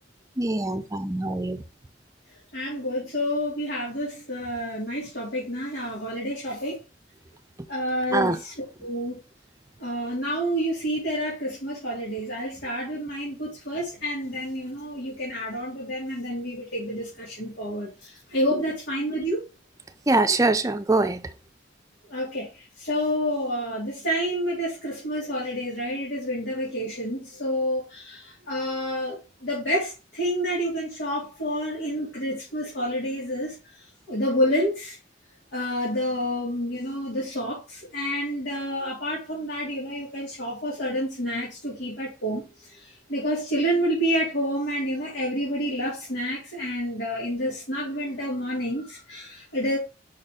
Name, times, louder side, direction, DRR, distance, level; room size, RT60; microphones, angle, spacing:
voice 1, 0.4-1.6 8.1-8.4 20.1-21.2, right 2 dB, 20° right, 0.6 m, -23 dB
voice 2, 2.5-6.8 7.7-9.2 9.8-19.4 22.1-33.5 34.1-35.0 35.5-42.4 42.7-49.8, equal, 75° left, 2.8 m, -29 dB
5.7 x 4.3 x 4.9 m
head